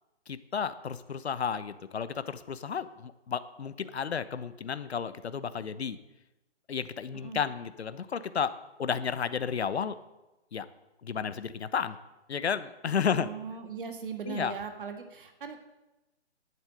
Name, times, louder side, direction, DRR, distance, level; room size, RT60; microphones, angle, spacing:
voice 1, 0.3-6.0 6.7-10.0 10.5-10.7 11.0-12.0 12.3-13.3 14.3-14.5, left 7 dB, 65° left, 13 dB, 1.0 m, -32 dB
voice 2, 13.1-15.6, right 6 dB, 45° right, 6 dB, 1.8 m, -39 dB
11.0 x 8.9 x 7.9 m, 1.0 s
hypercardioid pair, 170°, 35 cm